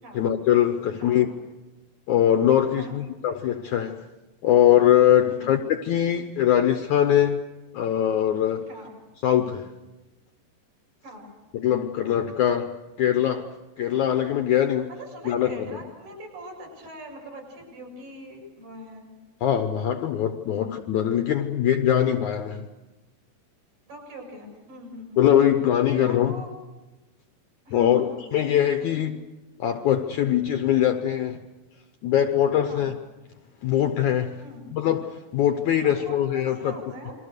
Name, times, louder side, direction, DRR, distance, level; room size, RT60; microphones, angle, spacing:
voice 1, 0.2-1.3 2.1-4.0 4.4-7.4 7.7-8.7 9.2-9.7 11.5-12.7 13.0-13.5 13.8-14.9 15.3-15.8 19.4-22.6 25.2-26.4 27.7-28.1 28.3-29.2 29.6-31.4 32.0-32.9 33.6-34.4 34.7-36.7, left 10 dB, 70° left, 7 dB, 1.9 m, -22 dB
voice 2, 1.0-1.3 2.7-3.0 5.3-5.6 8.7-8.9 11.0-11.2 14.9-19.0 20.5-20.6 23.9-26.5 27.7-28.2 28.8-29.2 32.7-32.9 34.4-34.7 35.8-37.1, equal, 60° right, -1 dB, 9.2 m, -42 dB
29.0 x 23.0 x 6.7 m, 1.1 s
omnidirectional pair, 4.4 m